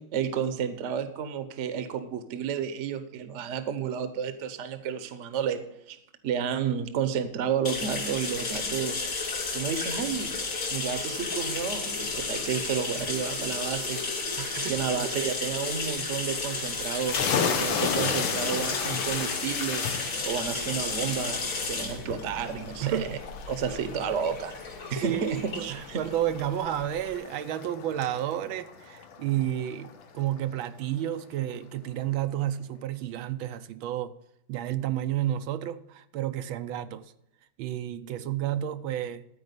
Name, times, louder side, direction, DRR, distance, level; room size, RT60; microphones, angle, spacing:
voice 1, 0.0-6.0 6.2-9.0 9.5-10.3 10.7-14.0 14.7-17.2 17.5-19.8 20.2-23.1 23.5-24.6 24.9-26.0, right 7 dB, 50° right, 0.9 m, -31 dB
sound 1, 7.6-27.1, left 3 dB, 70° left, 3.3 m, -33 dB
voice 2, 14.4-14.8 22.8-23.2 25.0-34.1 34.5-37.0 37.6-39.3, right 11 dB, 90° right, 1.5 m, -31 dB
sound 2, 17.0-30.4, left 7 dB, 85° left, 1.8 m, -34 dB
13.0 x 4.8 x 8.1 m
omnidirectional pair, 2.1 m